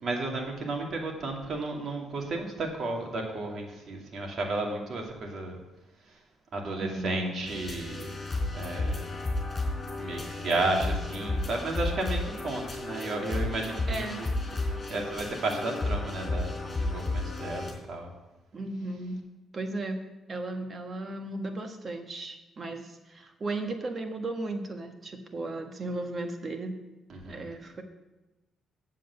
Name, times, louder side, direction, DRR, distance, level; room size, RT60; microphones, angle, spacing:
voice 1, 0.0-5.6 6.1-6.2 6.5-8.1 8.5-9.1 10.0-18.1 27.1-27.5, right 2 dB, 55° right, 1 dB, 2.4 m, -33 dB
voice 2, 6.8-7.5 10.6-10.9 13.9-14.2 18.5-19.2 19.5-20.0 20.3-26.8 27.2-27.8, right 2 dB, 40° right, 5 dB, 1.5 m, -35 dB
sound 1, 7.5-17.7, left 2 dB, 30° left, 4.0 m, -32 dB
7.7 x 7.5 x 8.2 m, 1.0 s
cardioid pair, 90°, 0 cm